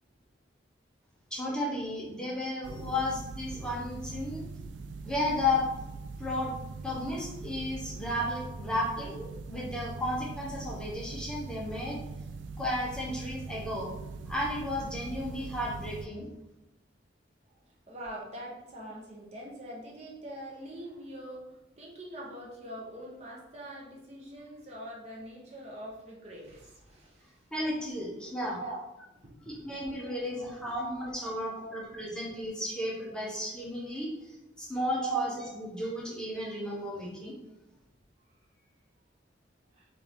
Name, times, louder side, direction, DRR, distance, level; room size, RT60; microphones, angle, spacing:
voice 1, 1.3-4.5 5.0-5.7 6.2-6.5 6.8-12.0 12.6-13.9 14.3-16.3 27.5-28.6 29.5-35.3 35.6-37.4, left 1 dB, 5° left, -5 dB, 0.8 m, -33 dB
sound 1, 2.6-16.1, right 3 dB, 70° right, 0.3 m, -42 dB
voice 2, 17.9-27.4 27.9-28.8 29.1-29.7 30.0-30.7 31.3-32.1 35.0-35.5 39.7-39.9, right 2 dB, 35° right, -3 dB, 0.9 m, -42 dB
4.5 x 2.6 x 3.4 m, 0.98 s
head